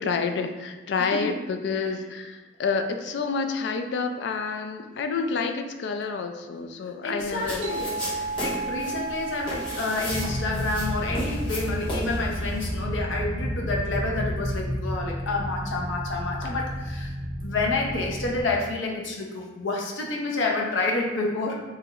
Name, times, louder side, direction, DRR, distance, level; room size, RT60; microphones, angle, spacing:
voice 1, 0.0-7.6, left 4 dB, 65° left, 6 dB, 0.3 m, -29 dB
voice 2, 1.0-1.4 1.7-2.0 7.0-17.1 17.4-21.5, left 3 dB, 90° left, 0 dB, 0.7 m, -29 dB
sound 1, 7.2-12.7, equal, 25° left, 1.3 m, -36 dB
sound 2, 7.6-12.6, right 3 dB, 65° right, 0.6 m, -35 dB
sound 3, 10.0-18.4, equal, 50° right, 1.4 m, -31 dB
4.7 x 2.9 x 2.4 m, 1.2 s
head